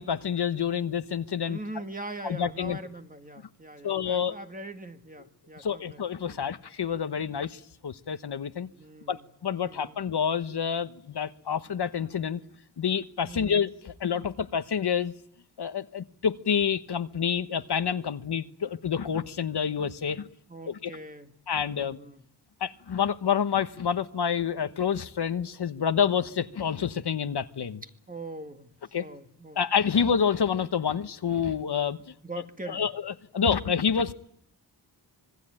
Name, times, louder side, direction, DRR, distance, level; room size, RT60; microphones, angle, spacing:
voice 1, 0.0-1.6 2.2-2.8 3.8-4.3 5.6-8.7 9.1-12.4 12.8-15.1 15.6-20.3 20.7-20.9 21.5-22.0 22.6-27.8 28.9-29.0 29.5-32.1 32.7-34.1, left 7 dB, 70° left, 10 dB, 1.2 m, -28 dB
voice 2, 1.5-6.5 8.8-9.3 9.6-10.0 13.3-13.6 20.5-21.3 21.6-22.2 28.1-29.6 32.2-32.9, right 2 dB, 20° right, 6 dB, 2.0 m, -42 dB
25.5 x 21.0 x 9.0 m, 0.68 s
wide cardioid pair, 100°, 41 cm